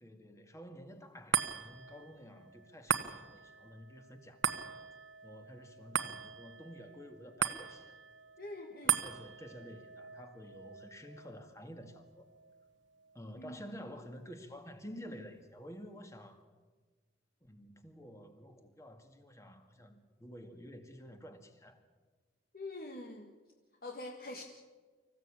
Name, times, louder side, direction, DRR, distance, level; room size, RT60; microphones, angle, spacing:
voice 1, 0.0-4.4 5.2-8.0 8.8-12.3 13.1-16.5 17.4-21.8, equal, 15° left, 6 dB, 2.0 m, -50 dB
sound 1, 1.3-13.9 14.4-14.5, right 8 dB, 90° right, 1.2 m, -39 dB
voice 2, 8.4-9.0 13.3-13.6 22.5-23.3 23.8-24.4, left 2 dB, 50° left, 3 dB, 1.6 m, -44 dB
25.5 x 15.5 x 8.8 m, 1.4 s
head